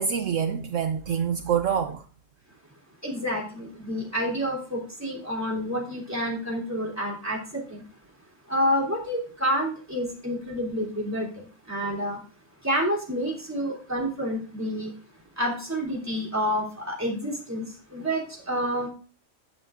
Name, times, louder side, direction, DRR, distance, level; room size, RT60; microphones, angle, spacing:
voice 1, 0.0-2.0, right 7 dB, 70° right, 1.0 m, -26 dB
voice 2, 3.0-7.8 8.5-12.2 12.6-14.9 15.4-17.7 17.9-18.9, equal, 10° right, 3.1 m, -29 dB
13.5 x 9.7 x 2.5 m
omnidirectional pair, 1.4 m